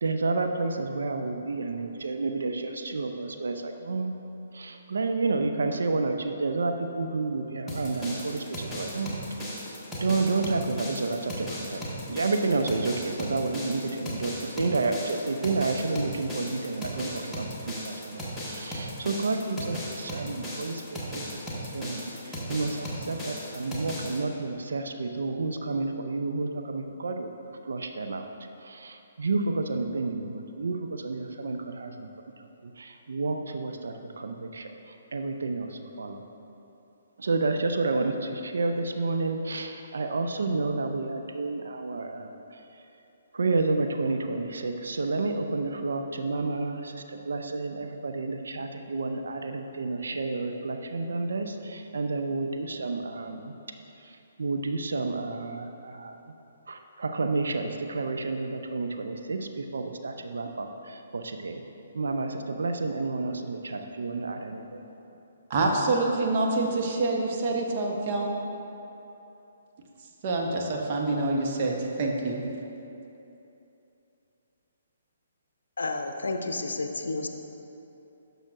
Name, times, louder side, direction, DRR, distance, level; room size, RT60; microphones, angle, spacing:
voice 1, 0.0-4.1 4.5-9.1 9.9-27.3 27.6-28.3 28.6-32.1 32.6-34.7 35.1-36.2 37.2-42.6 43.3-53.5 54.0-56.2 56.7-61.6 61.9-64.8, right 3 dB, 65° right, 5 dB, 0.5 m, -30 dB
sound 1, 7.7-24.2, equal, ahead, 1.4 m, -36 dB
voice 2, 65.5-68.3 70.2-72.4, right 2 dB, 40° right, 0 dB, 0.9 m, -26 dB
voice 3, 75.8-77.3, left 3 dB, 70° left, 5 dB, 0.6 m, -31 dB
11.5 x 6.4 x 2.5 m, 2.9 s
figure-of-eight pair, 130°, 0 cm